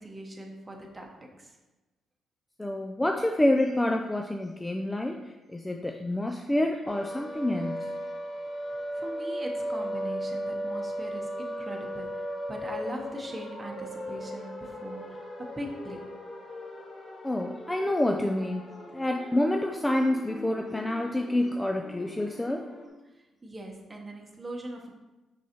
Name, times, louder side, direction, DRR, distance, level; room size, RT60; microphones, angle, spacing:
voice 1, 0.0-1.5 8.7-15.2 15.6-16.1 23.4-24.9, right 1 dB, 20° right, 1 dB, 0.9 m, -41 dB
voice 2, 2.6-7.9 17.2-18.6 18.9-22.7, left 1 dB, 10° left, 3 dB, 0.3 m, -28 dB
sound 1, 6.9-22.9, equal, 35° left, 1.2 m, -37 dB
6.2 x 5.4 x 2.9 m, 1.1 s
cardioid pair, 125°, 0 cm